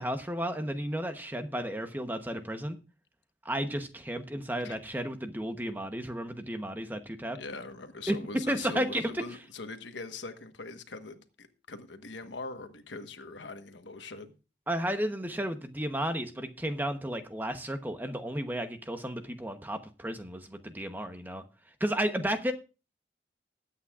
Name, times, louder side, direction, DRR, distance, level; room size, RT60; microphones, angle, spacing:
voice 1, 0.0-2.8 3.4-7.4 8.1-8.2 8.5-9.2 14.7-21.4 21.8-22.5, equal, 10° right, 0.9 m, -33 dB
voice 2, 7.3-14.3, left 3 dB, 90° left, 1.3 m, -42 dB
20.5 x 8.6 x 2.4 m
head